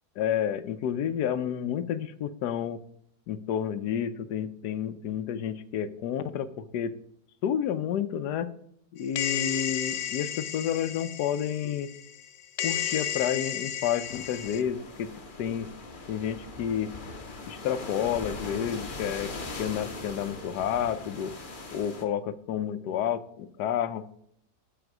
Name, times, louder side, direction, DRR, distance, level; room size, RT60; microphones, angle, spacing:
voice 1, 0.2-2.8 3.3-6.9 7.4-8.5 8.9-11.9 12.6-15.1 15.4-15.7 16.1-16.9 17.5-19.3 19.6-21.3 21.7-24.1, left 9 dB, 85° left, 13 dB, 1.3 m, -30 dB
sound 1, 9.2-12.3 12.6-14.6, left 10 dB, 60° left, 0.7 m, -33 dB
sound 2, 14.0-22.0, left 3 dB, 35° left, 1.2 m, -40 dB
13.0 x 4.5 x 6.0 m, 0.68 s
omnidirectional pair, 1.7 m